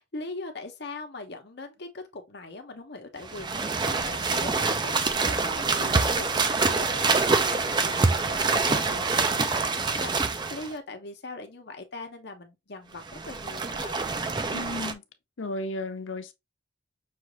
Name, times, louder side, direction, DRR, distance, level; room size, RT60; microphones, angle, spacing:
voice 1, 0.0-14.1, left 2 dB, 60° left, 1.0 m, -41 dB
sound 1, 3.2-10.7 13.0-14.9, right 4 dB, 25° right, 0.4 m, -26 dB
voice 2, 14.5-15.0 15.4-16.3, left 2 dB, 90° left, 0.7 m, -34 dB
5.9 x 2.5 x 3.0 m
head